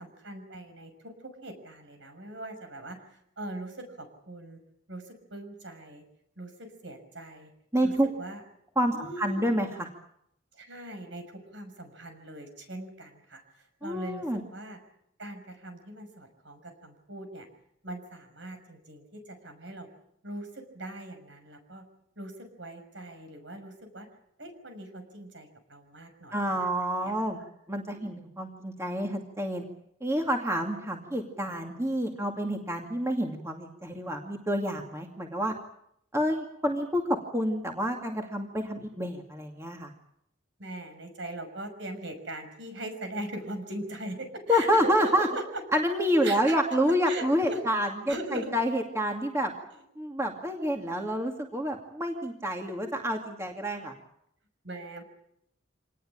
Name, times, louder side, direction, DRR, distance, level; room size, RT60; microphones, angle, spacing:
voice 1, 0.0-4.6 4.9-6.0 6.4-7.5 7.8-7.9 8.2-8.4 8.9-9.5 10.5-14.8 15.2-17.5 17.8-19.9 20.2-21.9 22.2-24.1 24.4-26.7 27.0-27.2 27.9-28.3 40.6-45.4 46.2-46.5 47.1-47.6 48.1-48.5 54.6-55.0, right 1 dB, 65° right, 6 dB, 6.0 m, -41 dB
voice 2, 7.7-8.1 8.8-9.9 13.8-14.4 26.3-27.4 27.7-29.7 30.0-35.5 36.1-39.9 44.5-45.3 45.7-49.5 50.0-53.9, equal, 15° right, 2 dB, 2.3 m, -28 dB
26.0 x 19.5 x 8.8 m, 0.75 s
head